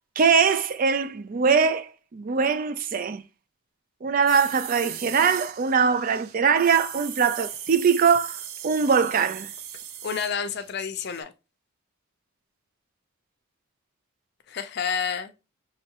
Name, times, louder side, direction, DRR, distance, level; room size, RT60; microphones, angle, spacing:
voice 1, 0.2-3.2 4.0-9.5, right 6 dB, 40° right, 0.3 m, -22 dB
sound 1, 4.3-10.7 11.0-11.2, right 9 dB, 75° right, 0.6 m, -38 dB
voice 2, 10.0-11.3 14.5-15.3, left 7 dB, 50° left, 0.4 m, -29 dB
5.5 x 3.1 x 2.8 m
head